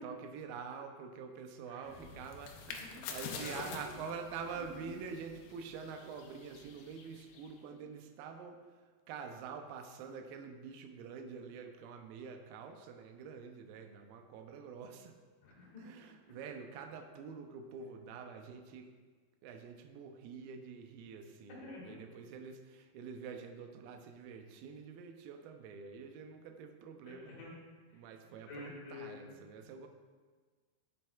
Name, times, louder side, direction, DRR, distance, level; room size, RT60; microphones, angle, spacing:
voice 1, 0.0-15.1 15.8-18.9 19.4-27.5 27.9-29.9, right 6 dB, 80° right, 5 dB, 2.3 m, -47 dB
sound 1, 1.8-7.6, left 6 dB, 80° left, 2.1 m, -48 dB
voice 2, 3.4-4.0 4.5-4.7 7.7-7.8 15.4-15.9 21.5-22.0 27.0-27.6 27.9-28.0 28.5-29.4, left 2 dB, 65° left, -5 dB, 3.1 m, -49 dB
9.8 x 7.5 x 2.3 m, 1.5 s
omnidirectional pair, 4.6 m